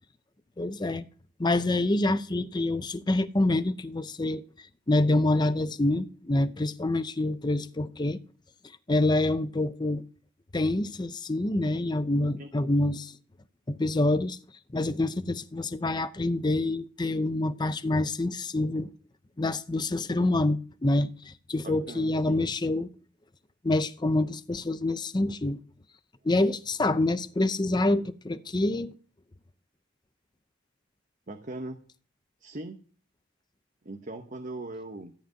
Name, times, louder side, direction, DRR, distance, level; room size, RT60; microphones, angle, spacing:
voice 1, 0.6-1.0 1.4-8.2 8.9-10.0 10.5-13.1 13.7-14.4 14.7-18.9 19.4-22.9 23.6-25.6 26.2-28.9, left 2 dB, 20° left, 0.5 m, -26 dB
voice 2, 21.6-22.4 31.3-31.8 32.4-32.8 33.8-35.1, right 2 dB, 40° right, 1.1 m, -40 dB
14.0 x 5.1 x 9.1 m
head